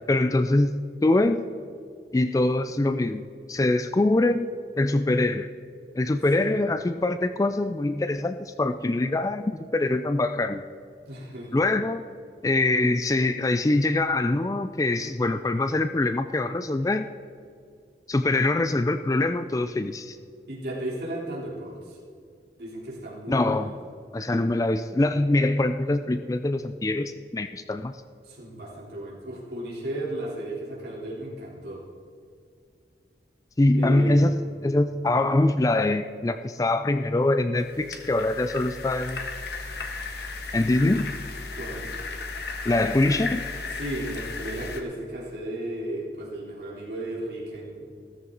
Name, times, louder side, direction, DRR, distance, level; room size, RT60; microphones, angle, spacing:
voice 1, 0.1-1.4 2.1-4.5 4.8-5.5 6.0-10.6 11.5-12.0 12.4-17.1 18.1-20.2 23.3-23.7 24.1-27.9 33.6-34.4 34.6-39.2 40.5-41.1 42.6-43.5, left 2 dB, 20° left, 10 dB, 0.3 m, -24 dB
voice 2, 11.1-11.6 20.5-22.0 22.6-23.7 28.2-31.8 33.7-34.5 41.5-41.9 43.8-47.9, right 1 dB, 60° right, -4 dB, 3.6 m, -34 dB
sound 1, 37.6-44.8, left 3 dB, 65° left, 1.4 m, -35 dB
14.0 x 14.0 x 4.0 m, 2.2 s
head